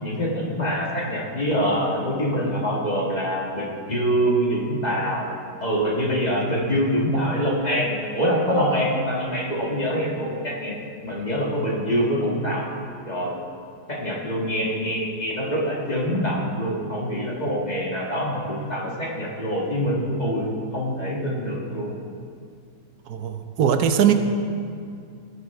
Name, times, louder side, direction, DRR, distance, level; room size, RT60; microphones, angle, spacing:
voice 1, 0.0-5.3 5.6-10.7 11.0-12.6 13.1-13.4 13.9-22.0, equal, 30° left, -4 dB, 1.9 m, -25 dB
voice 2, 23.1-24.1, right 8 dB, 85° right, 7 dB, 1.3 m, -20 dB
18.5 x 6.8 x 4.8 m, 2.3 s
omnidirectional pair, 1.6 m